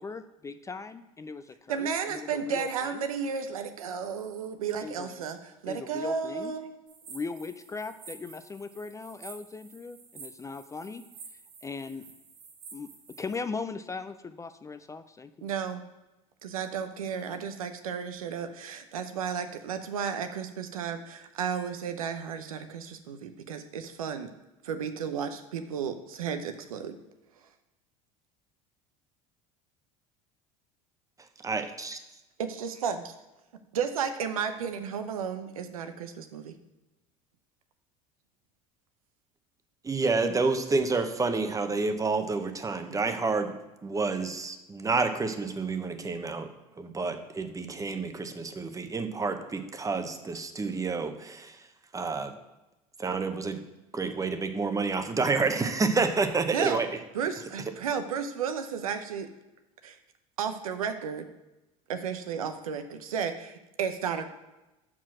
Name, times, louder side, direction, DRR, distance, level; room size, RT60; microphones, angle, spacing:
voice 1, 0.0-3.0 4.8-5.1 5.7-6.5 7.1-11.0 11.6-12.0 12.7-12.9 13.2-15.3, left 4 dB, 15° left, 10 dB, 0.4 m, -39 dB
voice 2, 1.7-6.8 15.4-15.8 16.4-24.3 24.6-27.0 32.4-33.1 33.7-36.5 56.5-56.8 57.1-59.3 59.8-60.0 60.4-61.3 61.9-64.3, right 7 dB, 90° right, 8 dB, 0.6 m, -33 dB
sound 1, 6.9-13.4, right 5 dB, 65° right, 2.7 m, -50 dB
voice 3, 31.4-32.0 39.8-43.5 43.8-46.5 46.8-51.5 51.9-52.3 53.0-53.6 53.9-56.9, right 4 dB, 20° right, 7 dB, 0.9 m, -29 dB
5.6 x 4.9 x 6.0 m, 1.0 s
hypercardioid pair, 80°, 18 cm